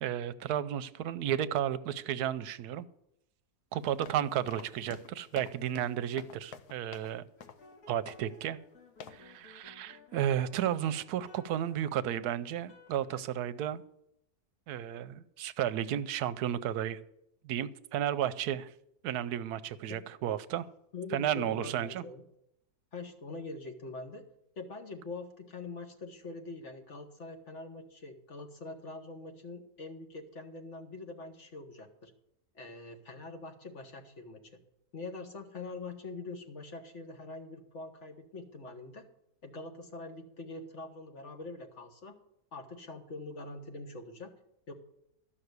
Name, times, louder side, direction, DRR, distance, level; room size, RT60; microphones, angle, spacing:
voice 1, 0.0-2.9 3.7-7.2 7.9-8.6 9.1-13.8 14.7-17.0 17.4-18.7 19.0-20.7 21.1-22.0, right 10 dB, 80° right, 15 dB, 1.1 m, -33 dB
sound 1, 3.8-7.1 7.4-7.7 8.1-8.4 9.0-9.3, left 7 dB, 90° left, 1.3 m, -49 dB
sound 2, 7.4-13.2, left 2 dB, 70° left, 3.8 m, -57 dB
voice 2, 20.9-22.2 22.9-24.2 24.6-32.1 32.5-34.4 34.9-39.0 39.4-42.1 42.5-44.3 44.7-44.8, left 3 dB, 50° left, 5 dB, 1.6 m, -44 dB
13.5 x 5.9 x 8.1 m, 0.80 s
omnidirectional pair, 1.6 m